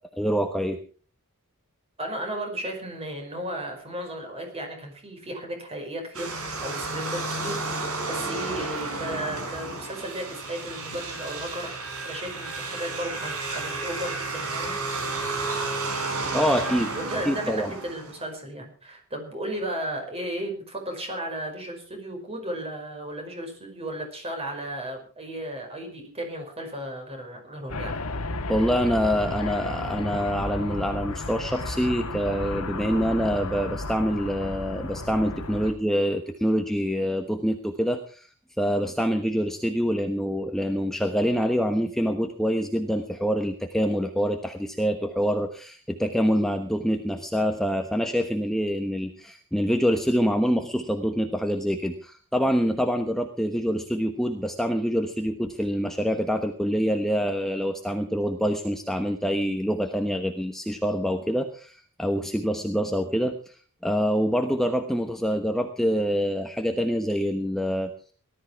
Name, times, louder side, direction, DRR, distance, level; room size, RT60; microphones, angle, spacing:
voice 1, 0.1-0.8 16.3-16.9 17.2-17.7 28.5-38.3 38.6-63.6 63.8-68.1, equal, ahead, 5 dB, 1.1 m, -26 dB
voice 2, 2.0-14.7 16.9-27.9, right 1 dB, 30° right, 4 dB, 5.3 m, -35 dB
sound 1, 6.1-18.3, right 3 dB, 85° right, 5.4 m, -32 dB
sound 2, 27.7-35.7, left 2 dB, 90° left, 1.6 m, -33 dB
18.5 x 13.0 x 4.7 m, 0.40 s
head